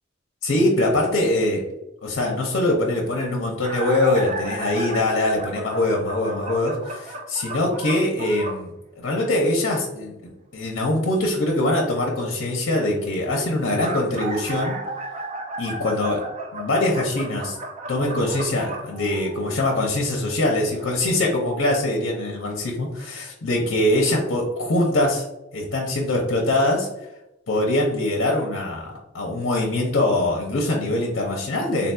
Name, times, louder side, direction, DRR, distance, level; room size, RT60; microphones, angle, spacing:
voice 1, 0.4-1.6 2.0-14.8 15.6-16.2 16.5-17.6 17.9-25.3 25.5-26.9 27.5-31.9, left 1 dB, 65° left, -1 dB, 0.6 m, -23 dB
sound 1, 3.6-8.7 13.5-19.7 20.8-20.9 22.0-22.1 22.4-22.5, right 2 dB, 35° right, 0.5 m, -33 dB
3.8 x 2.7 x 2.2 m, 0.93 s
head